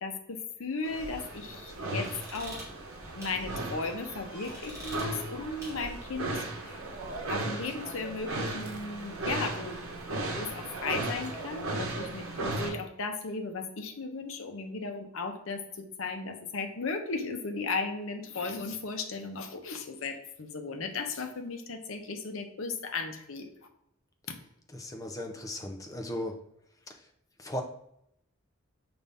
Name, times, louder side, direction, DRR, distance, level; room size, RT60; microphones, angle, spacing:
voice 1, 0.0-2.6 3.1-6.8 7.3-9.8 10.3-23.5, left 4 dB, 75° left, 5 dB, 0.7 m, -36 dB
sound 1, 0.8-12.7, right 2 dB, 85° right, 0.8 m, -36 dB
sound 2, 0.9-6.2, equal, 15° right, 1.6 m, -46 dB
voice 2, 24.7-26.4 27.4-27.6, left 1 dB, 15° left, 3 dB, 0.5 m, -36 dB
5.3 x 2.6 x 3.4 m, 0.77 s
head